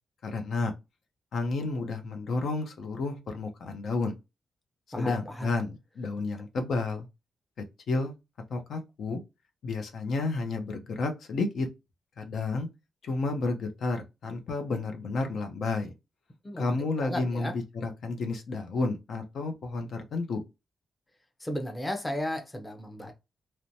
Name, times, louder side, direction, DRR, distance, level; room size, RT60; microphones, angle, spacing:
voice 1, 0.2-0.7 1.3-4.2 5.0-7.1 7.9-8.1 8.5-9.2 9.6-11.7 12.2-12.7 13.0-15.9 16.6-20.4, left 3 dB, 70° left, 0.6 m, -31 dB
voice 2, 4.9-5.5 16.4-17.5 21.4-23.1, left 1 dB, 15° left, 0.6 m, -34 dB
3.0 x 2.1 x 2.6 m
cardioid pair, 110°, 0 cm